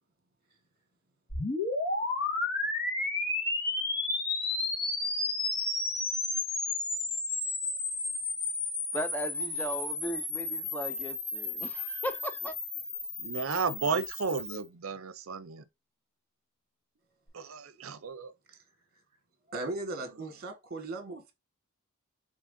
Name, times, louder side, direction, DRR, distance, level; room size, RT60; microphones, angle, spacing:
sound 1, 1.3-14.6, left 3 dB, 50° left, 1.8 m, -32 dB
voice 1, 8.9-12.6, equal, 10° left, 0.4 m, -37 dB
voice 2, 13.2-15.6 17.3-18.3, right 5 dB, 65° right, 0.6 m, -33 dB
voice 3, 19.5-21.3, right 2 dB, 45° right, 1.4 m, -37 dB
6.0 x 3.3 x 2.6 m
head